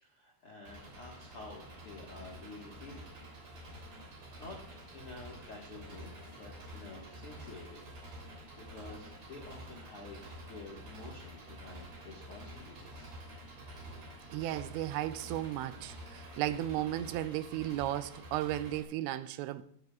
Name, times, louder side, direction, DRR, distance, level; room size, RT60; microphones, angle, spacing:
voice 1, 0.0-3.0 3.9-13.1, left 3 dB, 65° left, 1.4 m, -50 dB
Engine, 0.7-18.8, equal, 45° right, 4.5 m, -49 dB
voice 2, 14.3-19.6, right 13 dB, 90° right, 2.9 m, -35 dB
19.0 x 7.9 x 2.4 m
omnidirectional pair, 5.0 m